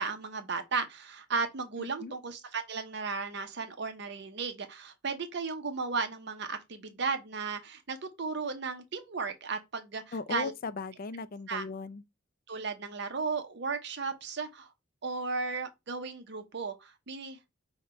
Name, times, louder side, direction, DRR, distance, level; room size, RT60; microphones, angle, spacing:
voice 1, 0.0-10.5 11.5-11.6 12.5-14.7 15.0-17.4, right 4 dB, 60° right, 0.7 m, -35 dB
voice 2, 1.8-2.1 10.1-12.0, left 4 dB, 45° left, 0.4 m, -38 dB
5.7 x 2.2 x 4.2 m
head